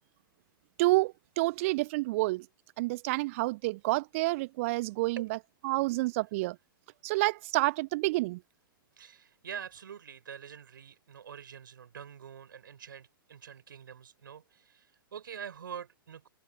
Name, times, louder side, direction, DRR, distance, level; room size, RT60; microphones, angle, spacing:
voice 1, 0.8-2.4 2.8-5.4 5.6-6.6 7.0-8.4, right 21 dB, 35° right, 0.3 m, -29 dB
voice 2, 9.0-16.3, right 8 dB, 65° right, 4.7 m, -45 dB
figure-of-eight pair, 110°, 12 cm